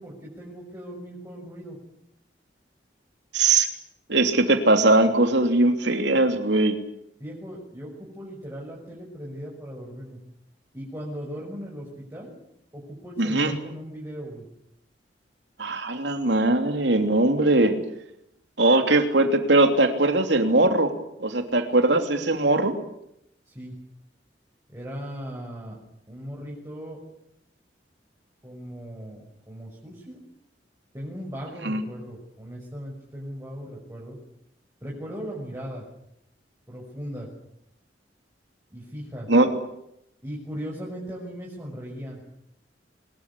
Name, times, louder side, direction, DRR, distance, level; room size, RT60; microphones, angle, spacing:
voice 1, 0.0-1.8 7.2-10.2 10.7-12.3 12.7-14.4 23.5-23.7 24.7-25.8 26.1-27.0 28.4-30.2 30.9-34.2 34.8-35.8 36.7-37.3 38.7-39.3 40.2-42.2, equal, 15° right, -4 dB, 6.2 m, -38 dB
voice 2, 3.3-3.7 4.1-6.8 13.2-13.5 15.6-17.8 18.6-20.9 21.2-22.8 31.6-31.8 39.3-39.5, right 2 dB, 75° right, 6 dB, 3.1 m, -20 dB
24.0 x 21.5 x 8.5 m, 0.78 s
head